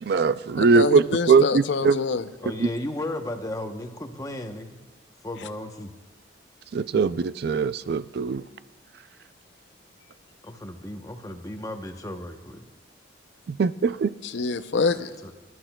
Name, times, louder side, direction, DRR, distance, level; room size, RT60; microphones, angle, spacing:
voice 1, 0.0-2.0 2.6-2.7 6.7-8.4 13.5-14.1, right 5 dB, 55° right, 15 dB, 0.3 m, -21 dB
voice 2, 0.6-2.3 14.2-15.1, left 4 dB, 70° left, 12 dB, 0.5 m, -26 dB
voice 3, 2.4-4.8 5.2-5.9 10.4-12.7 14.9-15.3, left 1 dB, 20° left, 5 dB, 0.8 m, -35 dB
25.0 x 12.5 x 2.3 m, 1.3 s
head